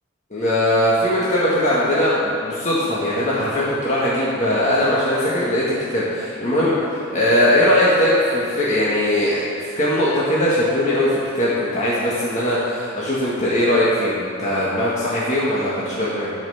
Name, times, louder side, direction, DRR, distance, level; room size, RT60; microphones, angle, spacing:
voice 1, 0.3-16.3, left 1 dB, 35° left, -8 dB, 1.6 m, -20 dB
13.5 x 5.5 x 7.0 m, 2.8 s
head